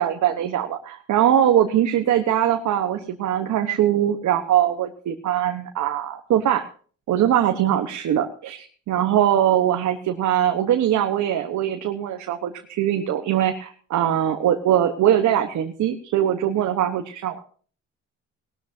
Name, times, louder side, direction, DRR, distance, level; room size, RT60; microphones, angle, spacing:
voice 1, 0.0-6.6 7.1-17.4, right 11 dB, 75° right, 5 dB, 1.2 m, -21 dB
19.0 x 13.0 x 2.8 m, 0.42 s
cardioid pair, 90°, 30 cm